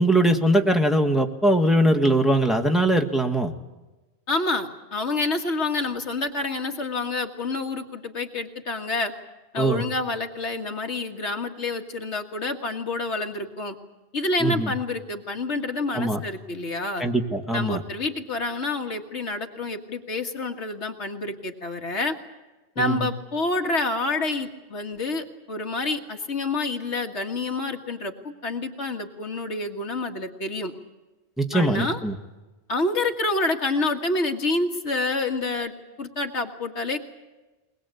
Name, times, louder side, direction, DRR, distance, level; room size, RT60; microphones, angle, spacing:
voice 1, 0.0-3.5 9.6-9.8 14.4-14.7 15.9-16.2 17.0-17.8 22.8-23.1 31.4-32.1, right 1 dB, ahead, 3 dB, 1.6 m, -21 dB
voice 2, 4.3-9.1 9.5-13.8 14.1-17.0 17.5-22.1 22.8-30.7 31.5-32.0 32.7-35.7 36.0-37.0, left 3 dB, 85° left, 4 dB, 2.1 m, -28 dB
22.0 x 21.0 x 8.3 m, 1.1 s
omnidirectional pair, 1.1 m